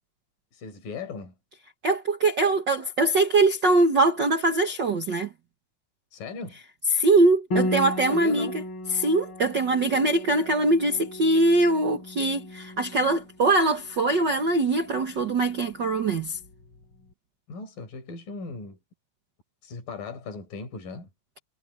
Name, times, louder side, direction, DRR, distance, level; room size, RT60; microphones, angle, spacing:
voice 1, 0.5-1.3 6.1-6.6 8.1-8.6 17.5-18.8 19.6-21.1, left 3 dB, 75° left, 6.8 m, -37 dB
voice 2, 1.8-5.3 6.9-8.6 9.0-16.4, right 2 dB, 50° right, 1.3 m, -22 dB
Piano, 7.5-16.8, left 1 dB, 35° left, 4.7 m, -36 dB
omnidirectional pair, 4.0 m